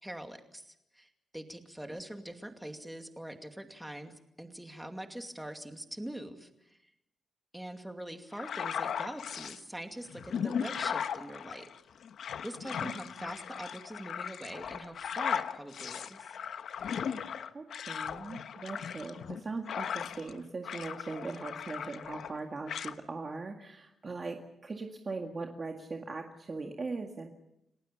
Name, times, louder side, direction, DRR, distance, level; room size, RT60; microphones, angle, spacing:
voice 1, 0.0-6.8 7.5-11.7 12.4-16.4, right 1 dB, 5° right, 5 dB, 2.4 m, -43 dB
sound 1, 8.3-9.6 10.1-20.4 20.6-22.4 22.7-22.9, left 7 dB, 70° left, 1.2 m, -37 dB
voice 2, 12.8-13.3 17.5-27.3, right 3 dB, 30° right, 3 dB, 1.9 m, -40 dB
29.5 x 18.5 x 7.0 m, 0.83 s
cardioid pair, 125°, 0 cm